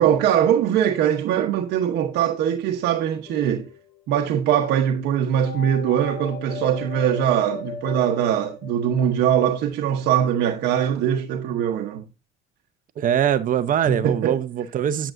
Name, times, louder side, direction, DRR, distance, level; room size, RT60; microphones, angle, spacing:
voice 1, 0.0-3.7 4.1-12.0 13.8-14.4, right 9 dB, 80° right, 1.1 m, -21 dB
sound 1, 3.3-4.0 5.4-9.2, left 6 dB, 80° left, 1.7 m, -37 dB
voice 2, 13.0-15.1, right 9 dB, 55° right, 0.8 m, -22 dB
9.1 x 8.8 x 2.6 m
cardioid pair, 110°, 17 cm